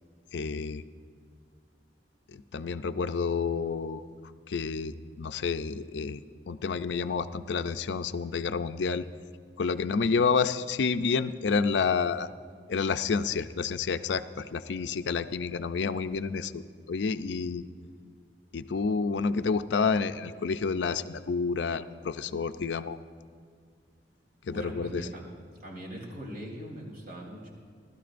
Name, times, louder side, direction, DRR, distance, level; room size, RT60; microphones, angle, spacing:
voice 1, 0.3-0.8 2.3-4.1 4.5-6.2 6.5-9.1 9.6-12.3 12.7-17.6 18.5-23.0 24.4-25.1, left 5 dB, 75° left, 11 dB, 0.5 m, -29 dB
voice 2, 24.5-25.2 25.6-27.5, equal, 55° right, -2 dB, 3.5 m, -40 dB
29.5 x 12.5 x 2.6 m, 2.1 s
head